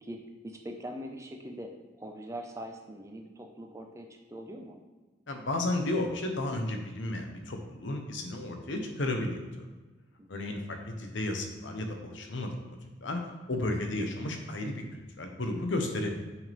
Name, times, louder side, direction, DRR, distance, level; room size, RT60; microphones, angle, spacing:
voice 1, 0.0-4.8 10.2-10.6, equal, 15° right, 3 dB, 0.6 m, -43 dB
voice 2, 5.3-9.7 10.3-12.6 13.0-16.1, left 2 dB, 70° left, 4 dB, 0.9 m, -33 dB
6.5 x 6.1 x 3.4 m, 1.2 s
head